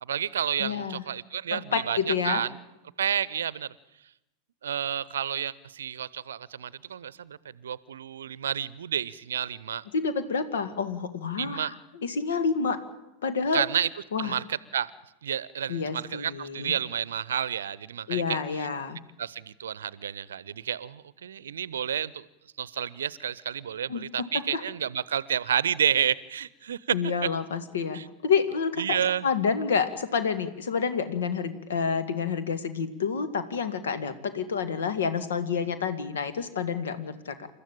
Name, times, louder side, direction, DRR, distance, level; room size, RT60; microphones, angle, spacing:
voice 1, 0.0-2.5 3.0-3.7 4.6-9.8 11.4-11.7 13.5-13.9 14.2-14.9 15.2-18.4 19.2-22.2 22.6-27.0 27.9-28.0 28.8-29.3, right 9 dB, 65° right, 21 dB, 0.7 m, -30 dB
voice 2, 0.6-1.0 1.5-2.4 9.9-12.8 13.2-13.6 14.1-14.4 15.7-16.7 18.1-19.0 23.9-24.0 24.3-24.6 26.9-37.5, left 5 dB, 65° left, 11 dB, 2.1 m, -29 dB
29.0 x 13.5 x 9.0 m, 0.95 s
figure-of-eight pair, 90°, 0 cm